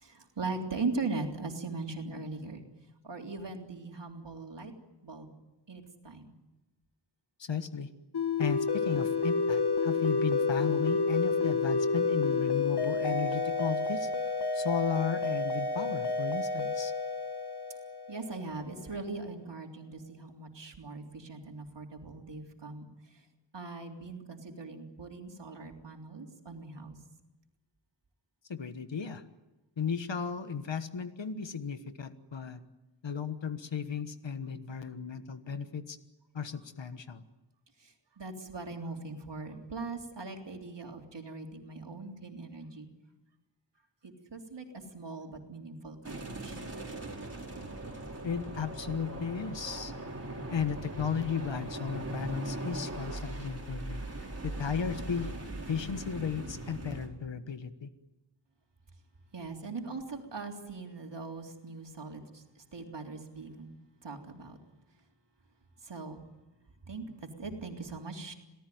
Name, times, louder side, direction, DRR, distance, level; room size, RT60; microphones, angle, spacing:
voice 1, 0.0-2.6 3.0-4.7 5.0-5.3 5.7-6.3 18.1-22.9 23.5-27.0 37.8-42.9 44.0-44.7 44.9-46.7 59.3-63.7 64.0-64.6 65.8-66.2 66.9-68.3, right 3 dB, 70° right, 2 dB, 3.6 m, -40 dB
voice 2, 7.4-7.9 8.4-16.9 28.5-29.2 29.8-32.6 33.0-36.0 36.3-37.2 48.2-49.9 50.5-55.3 55.7-57.9, left 6 dB, 80° left, 10 dB, 1.4 m, -35 dB
sound 1, 8.1-18.5, left 4 dB, 60° left, 1.5 m, -30 dB
sound 2, 46.0-57.1, right 2 dB, 35° right, 4.8 m, -40 dB
27.5 x 18.0 x 9.4 m, 1.1 s
wide cardioid pair, 75°, 43 cm